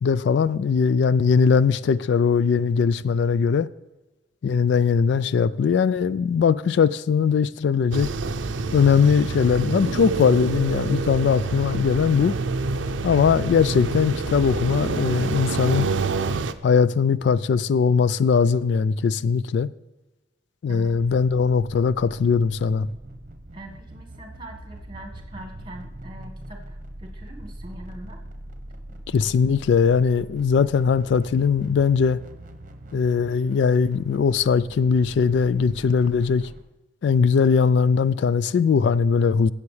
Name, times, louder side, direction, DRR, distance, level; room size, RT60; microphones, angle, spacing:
voice 1, 0.0-3.7 4.4-8.1 8.7-12.4 13.0-15.9 16.6-19.7 20.6-22.9 29.1-32.2 32.9-36.5 37.0-39.5, left 6 dB, 65° left, 0.3 m, -20 dB
sound 1, 7.9-16.5, right 3 dB, 85° right, 0.5 m, -27 dB
sound 2, 20.9-36.6, right 1 dB, 45° right, 1.0 m, -42 dB
voice 2, 23.5-28.2, right 1 dB, 25° right, 1.5 m, -42 dB
16.5 x 7.1 x 3.3 m
head